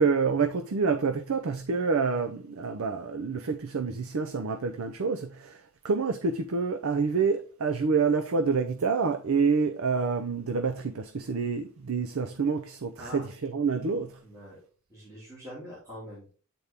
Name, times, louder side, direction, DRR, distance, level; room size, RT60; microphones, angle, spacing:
voice 1, 0.0-14.2, right 5 dB, 80° right, 0.6 m, -27 dB
voice 2, 13.0-13.3 14.2-16.3, equal, 15° right, 2.6 m, -44 dB
8.1 x 4.3 x 3.5 m
head